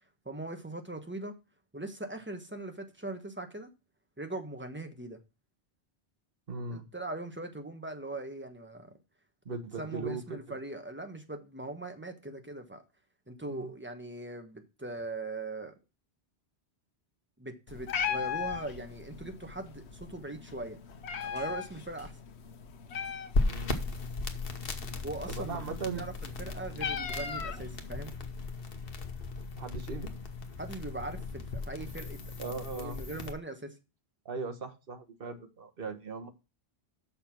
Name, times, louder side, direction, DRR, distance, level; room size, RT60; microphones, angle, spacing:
voice 1, 0.2-1.4 1.7-3.7 4.2-5.2 6.7-8.9 9.5-12.8 13.3-15.7 17.4-20.8 21.2-22.1 25.0-28.1 30.6-33.7, right 2 dB, 10° right, 1.1 m, -40 dB
voice 2, 6.5-6.8 9.4-10.4 13.5-13.7 23.4-23.8 25.3-26.0 29.6-30.1 32.4-33.0 34.2-36.3, right 4 dB, 60° right, 1.4 m, -38 dB
Meow, 17.7-28.1, left 7 dB, 85° left, 1.1 m, -39 dB
sound 1, 23.3-33.3, left 3 dB, 60° left, 1.2 m, -36 dB
6.7 x 5.7 x 5.9 m
omnidirectional pair, 1.1 m